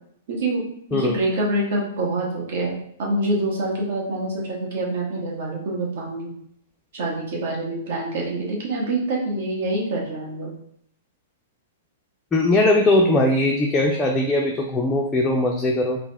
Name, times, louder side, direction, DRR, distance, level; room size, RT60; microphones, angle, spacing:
voice 1, 0.3-0.6 0.9-6.3 6.9-10.5, right 2 dB, 50° right, -3 dB, 1.1 m, -26 dB
voice 2, 12.3-16.0, left 2 dB, 15° left, -1 dB, 0.4 m, -20 dB
4.0 x 2.0 x 3.3 m, 0.70 s
figure-of-eight pair, 105°, 0 cm